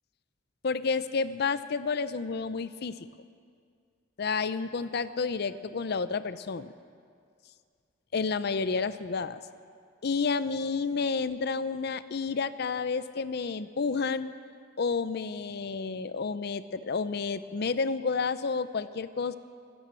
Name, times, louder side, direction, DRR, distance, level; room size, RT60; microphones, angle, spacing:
voice 1, 0.6-3.1 4.2-6.7 8.1-9.4 10.0-14.3 14.8-19.4, left 4 dB, 55° left, 14 dB, 0.5 m, -30 dB
14.0 x 12.5 x 7.6 m, 2.2 s
head